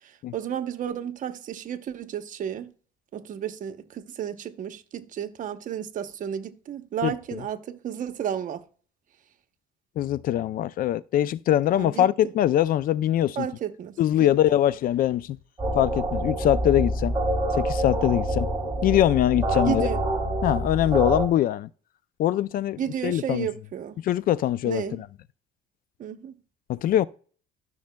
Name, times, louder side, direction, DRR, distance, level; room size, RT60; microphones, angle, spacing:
voice 1, 0.3-2.7 3.1-8.6 11.7-12.0 13.4-14.3 19.7-20.0 22.8-24.0 24.6-25.0 26.0-26.3, right 9 dB, 50° right, 0.9 m, -32 dB
voice 2, 7.0-7.4 10.0-13.5 14.0-15.4 15.7-17.2 17.5-18.5 18.8-19.9 20.4-21.7 22.2-23.5 24.0-25.1 26.7-27.1, left 12 dB, 55° left, 0.4 m, -23 dB
sound 1, 15.6-21.3, right 1 dB, 15° right, 2.8 m, -26 dB
14.0 x 6.3 x 2.2 m
cardioid pair, 110°, 17 cm